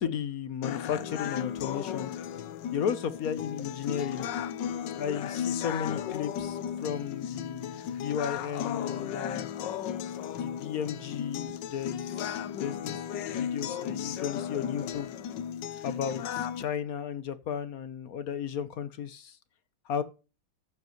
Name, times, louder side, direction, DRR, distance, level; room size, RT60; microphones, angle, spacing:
voice 1, 0.0-2.2 2.7-4.3 4.9-9.5 10.3-15.1 15.8-19.4 19.8-20.0, left 8 dB, 55° left, 1.3 m, -34 dB
sound 1, 0.6-16.6, left 9 dB, 75° left, 1.4 m, -35 dB
14.5 x 8.0 x 3.1 m
omnidirectional pair, 2.0 m